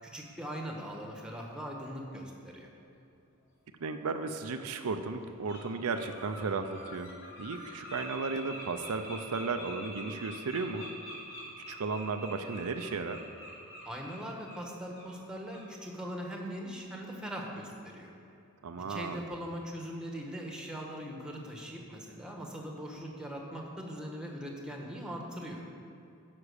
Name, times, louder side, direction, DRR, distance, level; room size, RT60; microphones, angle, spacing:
voice 1, 0.0-2.7 13.8-18.1 18.8-25.6, equal, 5° right, 0 dB, 1.1 m, -41 dB
Bird, 3.8-3.9 4.6-4.8 5.2-5.6 5.9-14.6 14.9-15.1 15.5-15.7, equal, 60° left, 2.5 m, -46 dB
voice 2, 3.8-7.1 7.4-10.9 11.7-13.2 18.6-19.3, right 4 dB, 75° right, 7 dB, 0.5 m, -34 dB
9.8 x 5.9 x 6.5 m, 2.7 s
head